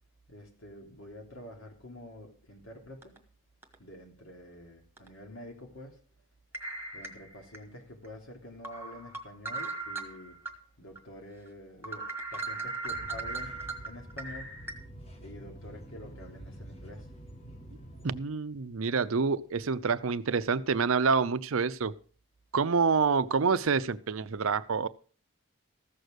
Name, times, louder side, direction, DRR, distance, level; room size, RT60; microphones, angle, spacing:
voice 1, 0.3-3.3 3.8-6.0 6.9-10.4 10.8-14.5 15.2-17.1 24.4-24.5, left 1 dB, 65° left, 3.1 m, -47 dB
sound 1, 3.0-3.2 3.6-3.7 5.0-5.1 6.5-7.6 8.0-8.1 8.6-10.5 10.9-11.0 11.5-11.6 11.8-14.7, right 3 dB, 10° right, 1.4 m, -38 dB
sound 2, 12.9-18.2, right 1 dB, 30° left, 1.8 m, -47 dB
voice 2, 18.0-21.9 22.5-24.9, right 5 dB, 70° right, 0.6 m, -27 dB
14.5 x 6.6 x 6.4 m
head